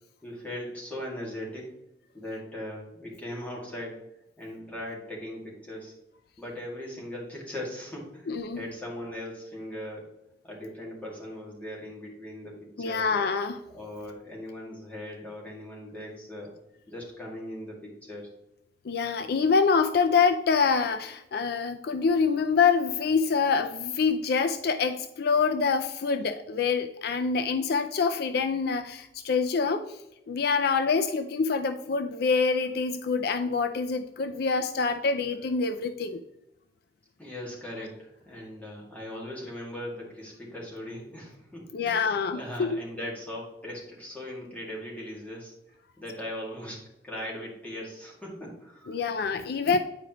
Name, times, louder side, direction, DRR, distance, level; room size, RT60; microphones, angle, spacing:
voice 1, 0.2-1.7 2.1-4.0 4.4-5.9 6.4-10.1 10.4-13.1 13.7-16.5 16.9-18.3 37.2-49.1, left 1 dB, 10° left, -4 dB, 2.2 m, -39 dB
voice 2, 8.3-8.6 12.8-13.6 18.8-36.2 41.7-42.8 48.9-49.8, left 5 dB, 65° left, 9 dB, 0.4 m, -26 dB
9.3 x 4.9 x 3.0 m, 0.86 s
head